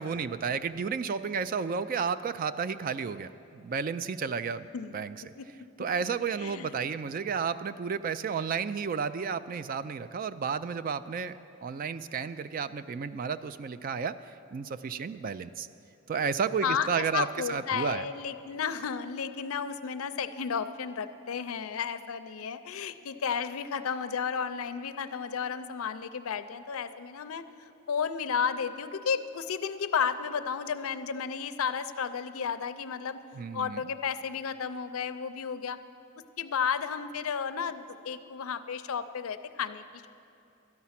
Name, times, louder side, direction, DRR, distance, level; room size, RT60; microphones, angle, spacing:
voice 1, 0.0-4.7 4.9-5.2 5.8-15.7 16.1-18.0 33.4-33.8, right 6 dB, 40° right, 13 dB, 0.3 m, -32 dB
voice 2, 6.4-6.7 16.6-16.9 17.1-27.4 27.9-33.2 33.5-35.8 36.4-40.1, left 6 dB, 85° left, 11 dB, 0.5 m, -32 dB
13.0 x 9.5 x 5.8 m, 2.6 s
head